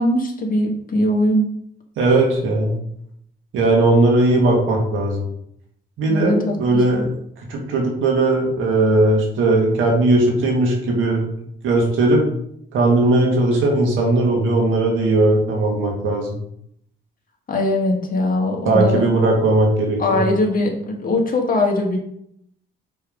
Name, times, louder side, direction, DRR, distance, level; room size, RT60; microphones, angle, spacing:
voice 1, 0.0-1.5 6.1-7.0 17.5-19.1 20.0-22.0, left 1 dB, 45° left, 1 dB, 1.7 m, -21 dB
voice 2, 2.0-2.7 3.5-5.2 6.0-7.1 7.5-11.2 11.6-12.2 12.7-16.3 18.6-20.2, right 2 dB, 85° right, 0 dB, 1.8 m, -18 dB
6.1 x 3.6 x 5.1 m, 0.72 s
cardioid pair, 90°, 20 cm